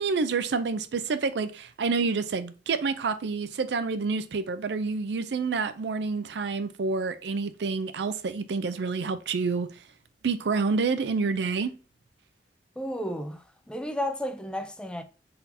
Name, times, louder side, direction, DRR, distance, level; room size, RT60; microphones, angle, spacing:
voice 1, 0.0-9.7 10.2-11.7, right 4 dB, 65° right, 0.4 m, -28 dB
voice 2, 12.8-15.0, equal, 5° left, 0.4 m, -33 dB
4.2 x 4.0 x 2.7 m
head